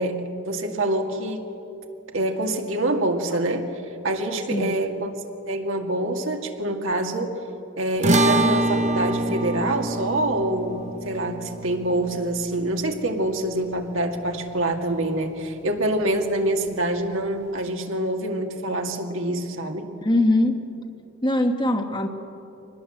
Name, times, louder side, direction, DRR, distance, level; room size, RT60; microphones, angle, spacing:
voice 1, 0.0-1.4 2.1-3.7 4.0-5.1 5.5-7.4 7.8-19.9, right 1 dB, 65° right, 3 dB, 2.2 m, -26 dB
sound 1, 8.0-14.5, right 2 dB, 35° right, 0.9 m, -26 dB
voice 2, 20.0-20.6 21.2-22.1, left 1 dB, 20° left, 5 dB, 1.3 m, -21 dB
24.5 x 20.0 x 7.8 m, 2.8 s
head